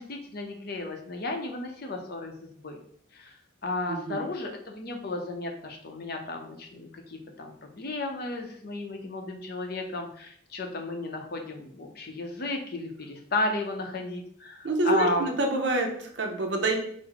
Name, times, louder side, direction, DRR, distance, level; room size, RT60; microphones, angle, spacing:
voice 1, 0.0-2.8 3.1-3.4 3.6-15.3, left 2 dB, 55° left, 3 dB, 0.6 m, -33 dB
voice 2, 3.9-4.2 14.6-16.8, right 2 dB, 65° right, 3 dB, 0.7 m, -27 dB
4.6 x 2.0 x 3.9 m, 0.64 s
head